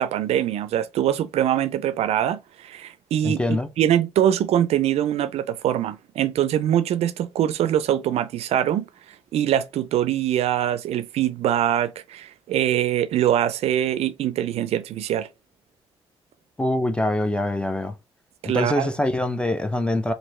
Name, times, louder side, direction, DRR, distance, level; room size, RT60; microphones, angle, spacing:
voice 1, 0.0-3.4 3.8-8.9 9.3-15.3 18.4-18.9, right 11 dB, 75° right, 0.4 m, -23 dB
voice 2, 3.2-3.7 16.6-17.9 18.4-20.1, left 1 dB, 10° left, 0.5 m, -24 dB
3.1 x 2.6 x 2.9 m
cardioid pair, 80°, 11 cm